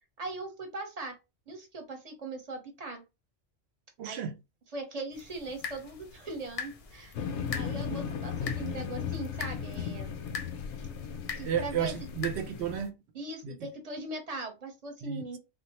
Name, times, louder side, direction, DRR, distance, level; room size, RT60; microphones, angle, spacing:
voice 1, 0.2-1.1 1.5-3.0 4.1-4.3 4.7-7.2 7.5-10.1 11.3-11.9 13.1-15.4, right 2 dB, 40° right, 0.9 m, -40 dB
voice 2, 4.0-4.3 11.4-12.9 13.4-13.7 15.0-15.2, right 8 dB, 75° right, 0.9 m, -32 dB
sound 1, 5.1-12.9, left 5 dB, 55° left, 0.4 m, -43 dB
sound 2, 7.1-12.8, left 7 dB, 85° left, 0.9 m, -36 dB
3.7 x 2.1 x 2.9 m
omnidirectional pair, 1.1 m